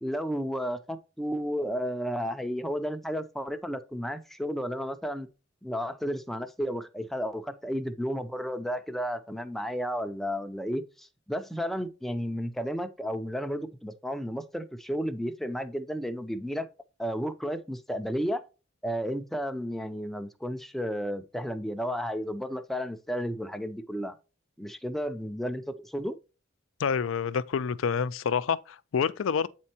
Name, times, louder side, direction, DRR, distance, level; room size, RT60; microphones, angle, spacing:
voice 1, 0.0-5.3 5.6-16.7 17.0-18.4 18.8-24.2 24.6-26.1, equal, ahead, 0.5 m, -32 dB
voice 2, 26.8-29.5, left 6 dB, 85° left, 0.4 m, -28 dB
8.3 x 4.4 x 2.8 m
head